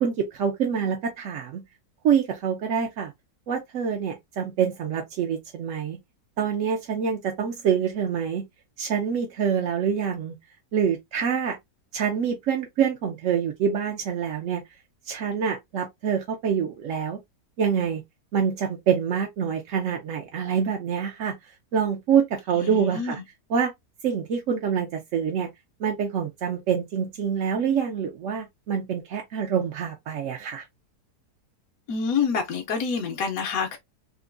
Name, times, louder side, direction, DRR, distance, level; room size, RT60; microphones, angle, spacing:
voice 1, 0.0-1.6 2.0-3.1 3.5-6.0 6.4-8.4 8.8-10.3 10.7-11.6 11.9-14.6 15.0-17.2 17.6-18.0 18.3-21.3 21.7-23.2 23.5-23.7 24.0-25.5 25.8-30.6, right 7 dB, 65° right, 0.8 m, -26 dB
voice 2, 22.5-23.2 31.9-33.8, left 6 dB, 65° left, 1.1 m, -27 dB
3.7 x 2.5 x 2.4 m
omnidirectional pair, 1.7 m